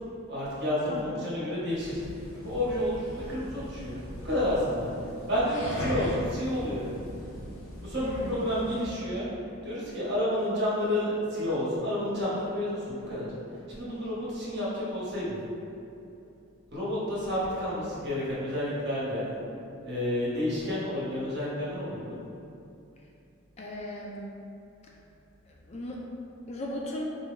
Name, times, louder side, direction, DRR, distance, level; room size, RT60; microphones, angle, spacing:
voice 1, 0.3-2.0 2.3-4.9 5.3-6.9 7.8-9.3 9.6-13.3 13.7-15.4 16.7-19.4 19.8-22.2, left 1 dB, 55° right, -8 dB, 1.1 m, -30 dB
voice 2, 0.9-1.2 8.0-8.5 23.6-24.3 25.7-26.0 26.5-27.0, left 1 dB, 30° left, -2 dB, 0.3 m, -37 dB
sound 1, 1.7-9.0, left 1 dB, 85° left, 0.7 m, -39 dB
4.1 x 2.2 x 3.7 m, 2.7 s
head